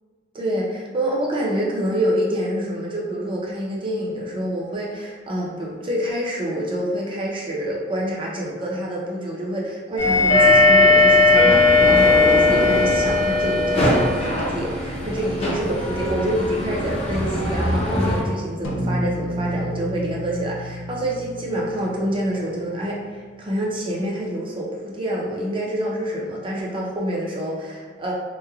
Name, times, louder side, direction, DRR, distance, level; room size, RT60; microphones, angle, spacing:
voice 1, 0.3-28.1, equal, 25° right, -3 dB, 0.5 m, -27 dB
sound 1, 10.0-18.2, left 2 dB, 35° left, 0.5 m, -18 dB
sound 2, 18.6-23.2, equal, 85° left, 0.4 m, -30 dB
3.0 x 2.2 x 2.3 m, 1.5 s
head